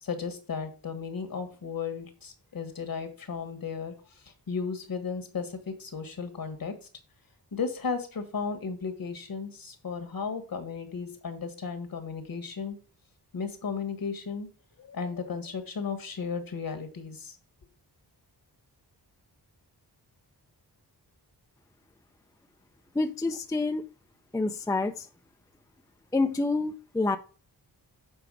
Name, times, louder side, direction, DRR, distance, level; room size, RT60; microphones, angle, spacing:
voice 1, 0.0-6.7 7.5-12.8 13.3-14.5 14.8-17.4, left 5 dB, 55° left, 7 dB, 1.5 m, -35 dB
voice 2, 22.9-23.8 24.3-25.1 26.1-27.2, left 3 dB, 10° left, 8 dB, 0.4 m, -27 dB
7.0 x 4.6 x 4.7 m, 0.37 s
wide cardioid pair, 165°, 41 cm